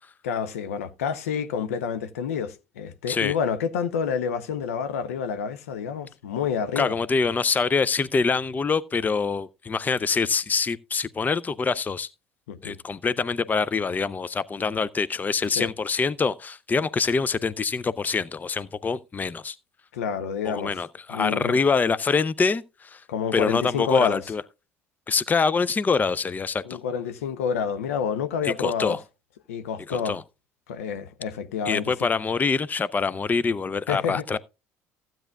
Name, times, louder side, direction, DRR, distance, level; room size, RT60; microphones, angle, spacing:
voice 1, 0.2-7.0 12.5-12.8 15.6-15.7 19.9-20.7 21.1-21.6 23.1-24.2 26.6-29.0 29.5-30.2 30.7-32.1 33.9-34.2, left 7 dB, 75° left, 0.7 m, -28 dB
voice 2, 6.8-12.1 12.6-19.6 20.4-23.0 23.3-24.4 25.1-26.8 28.4-29.0 29.9-30.2 31.7-34.4, left 5 dB, 20° left, 0.5 m, -25 dB
15.0 x 9.1 x 2.3 m
figure-of-eight pair, 60°, 8 cm